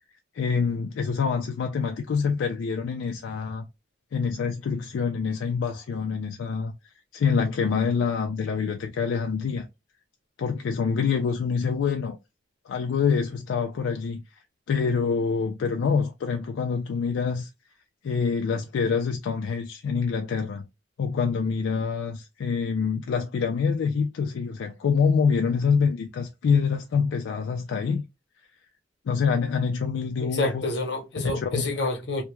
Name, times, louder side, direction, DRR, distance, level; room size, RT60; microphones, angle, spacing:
voice 1, 0.3-3.7 4.1-6.7 7.1-9.7 10.4-12.2 12.7-14.2 14.7-17.5 18.0-20.7 21.0-28.0 29.1-30.7 31.3-31.7, left 5 dB, 90° left, 0.3 m, -26 dB
voice 2, 30.3-32.2, left 2 dB, 70° left, 0.8 m, -28 dB
2.3 x 2.1 x 2.9 m
head